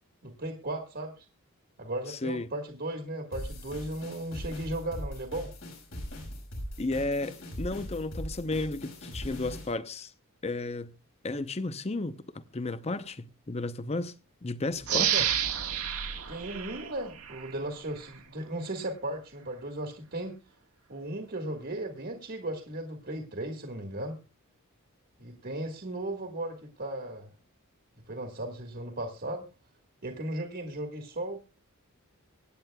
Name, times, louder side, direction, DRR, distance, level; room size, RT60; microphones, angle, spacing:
voice 1, 0.2-1.2 1.8-5.5 14.9-15.2 16.3-20.4 20.9-24.2 25.2-27.3 28.1-29.4 30.0-31.6, right 1 dB, 45° right, 1.6 m, -36 dB
voice 2, 2.1-2.5 6.8-10.1 10.4-10.9 11.2-12.2 12.5-14.2 14.4-15.1, left 2 dB, 30° left, 0.7 m, -33 dB
sound 1, 3.3-9.7, equal, 65° left, 5.5 m, -40 dB
sound 2, 14.8-17.5 18.0-18.1, right 10 dB, 90° right, 1.7 m, -30 dB
24.0 x 9.1 x 2.3 m
head